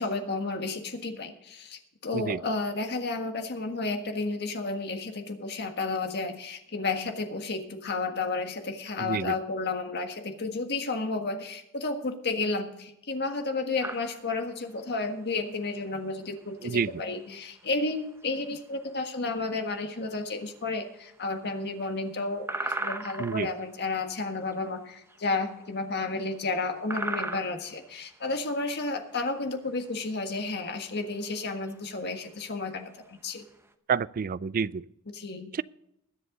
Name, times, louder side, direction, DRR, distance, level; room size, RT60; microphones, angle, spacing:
voice 1, 0.0-32.8 33.1-33.4 35.1-35.5, left 3 dB, 50° left, 1.6 m, -32 dB
voice 2, 9.0-9.3 16.6-17.0 23.2-23.5 33.9-34.8 35.5-35.6, right 6 dB, 40° right, 0.3 m, -29 dB
sound 1, 13.8-33.7, right 2 dB, 10° right, 0.8 m, -40 dB
21.0 x 7.8 x 3.9 m
head